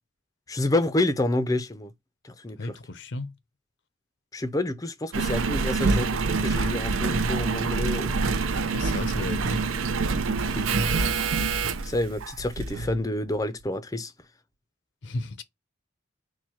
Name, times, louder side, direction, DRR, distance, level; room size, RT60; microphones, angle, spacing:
voice 1, 0.5-1.9 2.2-2.7 4.3-8.2 10.5-10.7 11.8-14.1, left 1 dB, 20° left, 0.5 m, -28 dB
voice 2, 2.6-3.3 8.7-9.6 15.0-15.4, left 2 dB, 65° left, 0.6 m, -34 dB
Engine, 5.1-13.0 13.6-13.7, right 4 dB, 90° right, 0.5 m, -26 dB
4.6 x 2.2 x 4.2 m
head